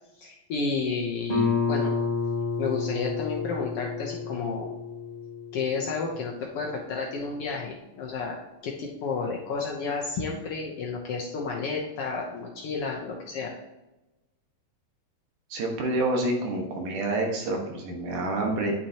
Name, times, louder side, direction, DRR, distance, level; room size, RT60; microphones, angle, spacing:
voice 1, 0.2-1.9 2.6-4.7 5.5-13.5, left 4 dB, 80° left, -1 dB, 1.3 m, -31 dB
Guitar, 1.3-6.7, left 5 dB, 40° left, 0.5 m, -30 dB
voice 2, 15.5-18.7, right 2 dB, 70° right, 1 dB, 3.0 m, -28 dB
9.4 x 8.6 x 2.9 m, 1.0 s
omnidirectional pair, 3.9 m